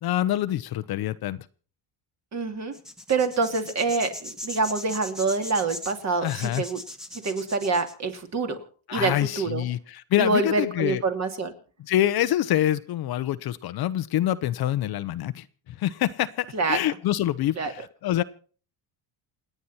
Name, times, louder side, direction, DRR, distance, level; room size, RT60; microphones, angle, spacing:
voice 1, 0.0-1.5 6.2-6.6 8.9-11.0 11.8-18.2, left 13 dB, 50° left, 13 dB, 0.8 m, -26 dB
voice 2, 2.3-2.7 3.1-6.8 7.2-8.6 8.9-9.6 10.2-11.5 16.5-16.8 17.6-17.7, right 3 dB, 35° right, 6 dB, 2.7 m, -26 dB
sound 1, 2.7-7.9, left 1 dB, ahead, 1.3 m, -39 dB
28.5 x 9.5 x 4.2 m, 0.41 s
cardioid pair, 150°, 47 cm